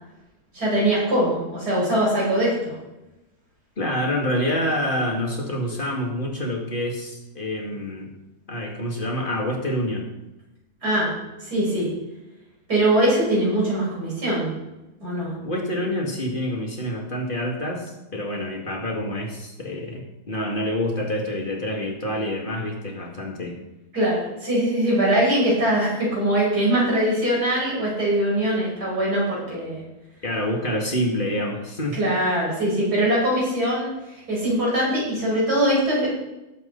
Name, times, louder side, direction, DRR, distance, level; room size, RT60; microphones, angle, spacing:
voice 1, 0.5-2.7 10.8-11.9 12.7-14.5 15.0-15.3 23.9-29.8 31.9-33.9 34.3-36.1, right 1 dB, 75° right, -5 dB, 6.0 m, -22 dB
voice 2, 3.8-8.1 8.5-10.1 15.4-23.6 30.2-32.0, left 1 dB, 30° left, 0 dB, 2.3 m, -27 dB
18.5 x 7.8 x 4.0 m, 0.98 s
omnidirectional pair, 1.7 m